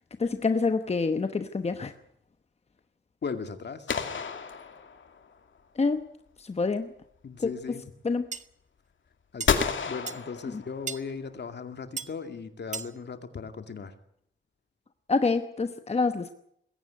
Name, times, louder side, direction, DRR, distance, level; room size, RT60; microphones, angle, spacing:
voice 1, 0.2-1.9 5.8-6.0 6.4-6.9 7.4-7.5 8.0-8.2 15.1-16.3, left 4 dB, 30° left, 9 dB, 1.0 m, -26 dB
voice 2, 3.2-3.9 7.2-7.8 9.3-13.9, left 5 dB, 60° left, 8 dB, 2.2 m, -37 dB
sound 1, 3.9-5.3 9.5-11.0, left 6 dB, 80° left, 2.6 m, -30 dB
sound 2, 8.3-8.4 9.4-9.5 10.1-10.2 10.9-11.0 12.0-12.1 12.7-12.9, right 5 dB, 40° right, 1.1 m, -35 dB
21.0 x 16.5 x 9.4 m, 0.72 s
wide cardioid pair, 175°, 20 cm